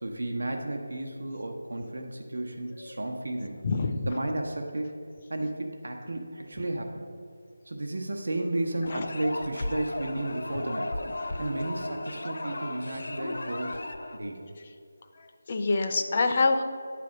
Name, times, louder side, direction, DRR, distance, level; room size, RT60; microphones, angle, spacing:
voice 1, 0.0-3.6 4.1-4.9 5.3-7.1 7.7-11.0 11.4-13.8 14.1-14.4, right 1 dB, 80° right, 2 dB, 0.9 m, -33 dB
voice 2, 3.6-4.1 8.9-9.1 15.5-16.6, left 3 dB, 30° left, 6 dB, 0.5 m, -25 dB
sound 1, 8.9-14.2, left 1 dB, 70° left, 0.7 m, -35 dB
9.6 x 3.4 x 6.4 m, 2.4 s
figure-of-eight pair, 175°, 0 cm